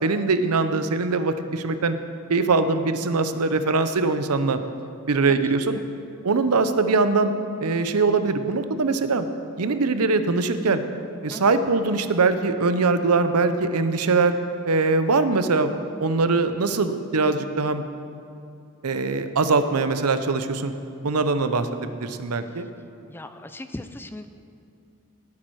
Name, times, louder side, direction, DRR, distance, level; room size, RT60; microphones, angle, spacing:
voice 1, 0.0-2.0 2.3-4.6 5.1-5.8 6.2-7.3 7.6-9.3 9.6-10.8 11.2-14.4 14.7-15.7 16.0-17.8 18.8-20.7 21.0-22.7, right 3 dB, 85° right, 10 dB, 0.7 m, -22 dB
voice 2, 5.3-5.8 11.3-11.6 23.1-24.3, left 1 dB, 10° left, 9 dB, 0.4 m, -39 dB
18.0 x 8.6 x 4.7 m, 2.6 s
head